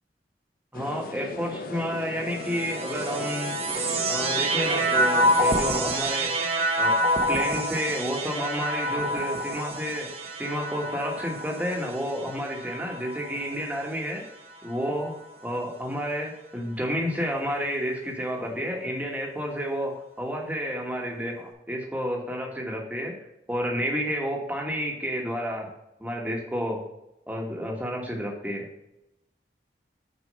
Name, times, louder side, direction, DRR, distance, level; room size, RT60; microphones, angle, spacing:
sound 1, 0.7-6.0, left 2 dB, 55° left, 1.0 m, -38 dB
voice 1, 0.7-3.6 4.1-6.4 6.8-7.0 7.3-10.1 10.4-14.2 14.6-15.1 15.4-23.1 23.5-25.7 26.0-26.8 27.3-28.7, equal, 10° right, 0 dB, 1.5 m, -30 dB
sound 2, 2.3-13.8 14.5-15.3, right 1 dB, 35° right, 1.0 m, -27 dB
6.3 x 5.0 x 5.4 m, 0.87 s
head